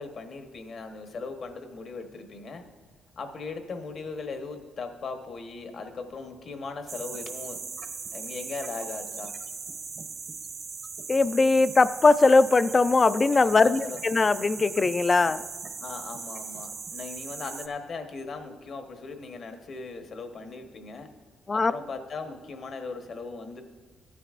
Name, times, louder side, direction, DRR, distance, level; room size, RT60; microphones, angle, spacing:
voice 1, 0.0-2.6 3.2-7.6 8.1-9.3 13.4-14.0 15.8-21.1 21.5-23.6, left 4 dB, 55° left, 5 dB, 1.1 m, -38 dB
sound 1, 6.9-17.7, right 5 dB, 45° right, 0.8 m, -39 dB
voice 2, 11.1-15.4 21.5-21.7, left 3 dB, 30° left, 14 dB, 0.3 m, -20 dB
15.0 x 9.8 x 2.5 m, 1.4 s
cardioid pair, 90°, 0 cm